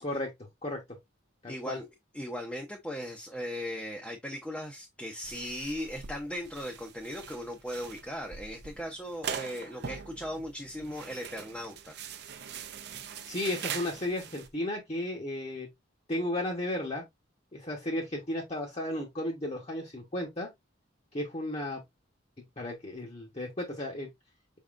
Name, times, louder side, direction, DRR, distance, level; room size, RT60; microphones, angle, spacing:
voice 1, 0.0-0.3 0.6-1.0 1.4-1.8 13.3-15.7 16.1-17.0 17.5-20.5 21.1-21.8 22.6-24.1, left 1 dB, 30° left, 1.0 m, -34 dB
voice 2, 1.5-1.9 2.1-12.0, equal, 5° left, 0.7 m, -38 dB
sound 1, 5.2-14.5, right 7 dB, 55° right, 0.6 m, -42 dB
5.5 x 3.6 x 2.5 m
head